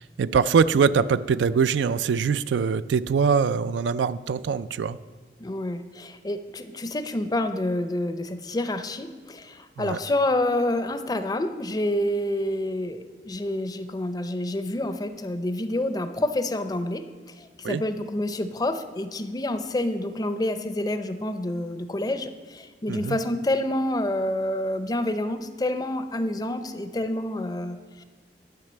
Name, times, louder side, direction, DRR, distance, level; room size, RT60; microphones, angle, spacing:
voice 1, 0.0-5.0 9.8-10.0 17.6-17.8 22.9-23.2, right 6 dB, 85° right, 15 dB, 0.3 m, -23 dB
voice 2, 5.4-17.1 17.4-28.0, left 1 dB, 20° left, 10 dB, 0.5 m, -28 dB
10.5 x 5.7 x 8.0 m, 1.4 s
head